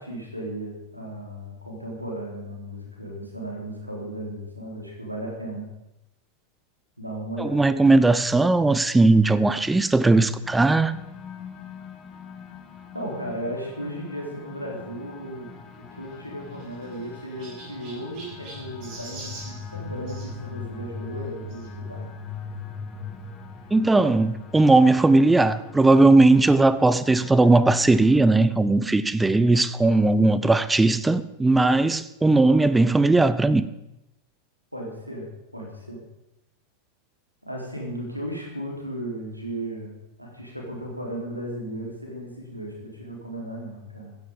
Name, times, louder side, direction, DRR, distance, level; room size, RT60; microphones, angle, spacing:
voice 1, 0.0-5.7 7.0-7.8 12.9-22.1 34.7-35.3 35.5-36.0 37.4-44.2, right 1 dB, 90° right, 3.7 m, -35 dB
voice 2, 7.4-10.9 23.7-33.6, right 2 dB, 10° right, 0.6 m, -18 dB
sound 1, 10.4-28.3, left 5 dB, 30° left, 1.7 m, -41 dB
Chirp tweet, 16.0-20.3 21.5-21.7 22.4-22.5 22.7-22.8 24.1-24.2, right 3 dB, 40° right, 6.3 m, -44 dB
15.0 x 10.0 x 5.4 m
figure-of-eight pair, 90°, 0 cm